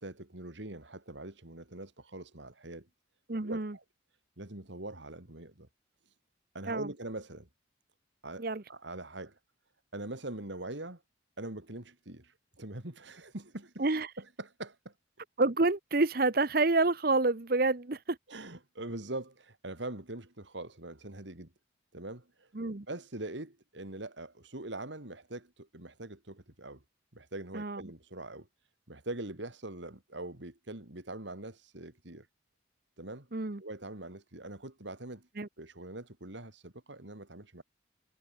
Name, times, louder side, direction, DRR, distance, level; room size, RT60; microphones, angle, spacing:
voice 1, 0.0-2.9 3.4-3.6 4.4-5.7 6.5-7.5 8.2-9.4 9.9-11.0 11.4-13.8 14.2-14.9 18.3-21.5 21.9-22.5 22.9-26.8 27.1-28.5 28.9-32.3 33.0-33.3 33.6-35.3 35.6-37.6, right 2 dB, 70° right, 2.9 m, -43 dB
voice 2, 3.3-3.8 6.7-6.9 8.4-8.6 13.8-14.1 15.4-18.2 22.5-22.9 27.5-27.9 33.3-33.6 35.4-35.5, right 3 dB, 50° right, 1.0 m, -28 dB
head